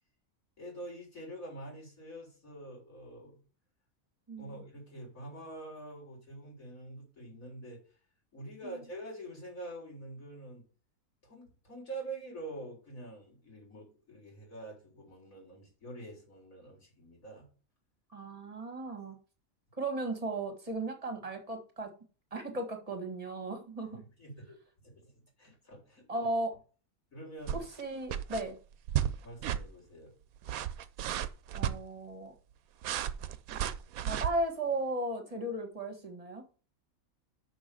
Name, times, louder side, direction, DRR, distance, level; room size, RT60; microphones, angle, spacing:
voice 1, 0.6-3.4 4.4-7.8 8.3-10.6 11.2-17.5 23.9-24.6 24.8-26.3 27.1-27.6 29.2-30.2, right 2 dB, 75° left, -2 dB, 4.4 m, -46 dB
voice 2, 4.3-4.6 8.6-8.8 18.1-19.2 19.8-21.9 22.3-24.0 26.1-26.6 27.8-28.5 31.5-32.3 34.0-36.4, right 2 dB, 25° right, 5 dB, 1.7 m, -36 dB
sound 1, 27.5-27.8 28.1-28.4 28.9-29.1 29.4-29.6 30.4-31.8 32.8-34.3, right 10 dB, 85° right, 1.1 m, -33 dB
6.2 x 6.1 x 6.7 m, 0.37 s
omnidirectional pair, 1.4 m